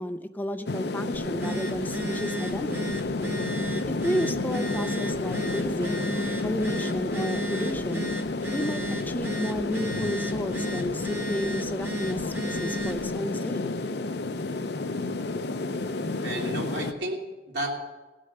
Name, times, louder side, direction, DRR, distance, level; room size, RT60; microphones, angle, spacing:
voice 1, 0.0-3.0 3.9-6.0 6.4-8.1 8.5-13.6, equal, 10° left, 9 dB, 0.4 m, -32 dB
sound 1, 0.7-16.9, left 2 dB, 65° left, 0.6 m, -31 dB
Telephone, 1.1-13.1, right 1 dB, 10° right, 1.1 m, -35 dB
voice 2, 16.2-17.7, right 1 dB, 75° right, -1 dB, 2.8 m, -32 dB
17.5 x 6.6 x 6.7 m, 1.2 s
head